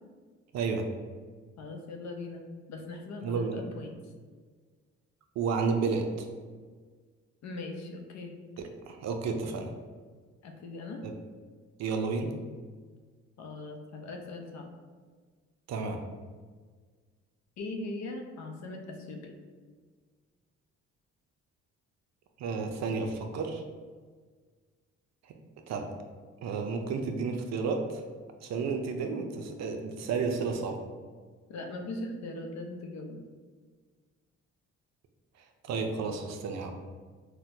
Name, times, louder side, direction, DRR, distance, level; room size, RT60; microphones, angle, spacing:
voice 1, 0.5-0.9 3.2-3.6 5.4-6.3 8.6-9.7 11.0-11.1 11.8-12.3 15.7-16.0 22.4-23.6 25.7-25.9 26.4-28.0 28.4-30.8 35.6-36.7, right 4 dB, 65° right, 5 dB, 0.5 m, -31 dB
voice 2, 1.6-4.1 7.4-8.3 10.4-11.0 13.4-14.7 17.6-19.3 31.5-33.2, left 2 dB, 65° left, 3 dB, 0.6 m, -40 dB
4.2 x 2.2 x 2.6 m, 1.5 s
cardioid pair, 80°, 29 cm